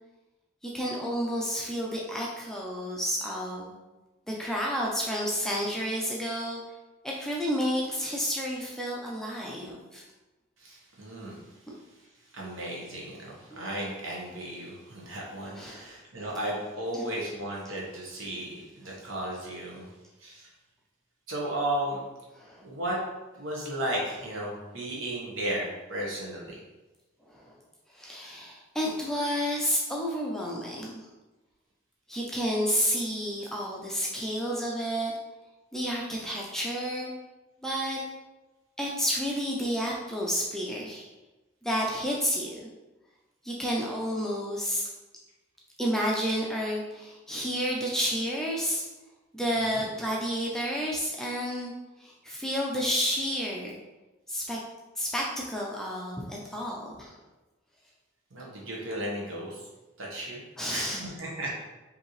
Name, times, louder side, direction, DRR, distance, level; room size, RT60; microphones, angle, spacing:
voice 1, 0.6-3.7 4.3-6.6 7.0-10.0 13.5-13.6 15.6-15.9 16.9-17.0 22.3-22.6 27.3-27.5 27.9-31.1 32.1-35.1 35.7-37.1 37.6-38.0 38.8-41.1 41.6-42.6 43.4-44.9 45.8-48.8 49.3-51.7 52.0-53.7 54.3-54.6 55.0-57.2 60.6-61.1, equal, ahead, -4 dB, 0.4 m, -30 dB
voice 2, 10.6-11.4 12.3-19.9 20.2-20.5 21.3-22.0 22.6-23.0 23.3-26.6 49.5-49.8 58.3-59.6 60.0-60.4 60.7-61.5, right 1 dB, 65° right, -3 dB, 1.2 m, -34 dB
5.1 x 2.8 x 3.1 m, 1.1 s
head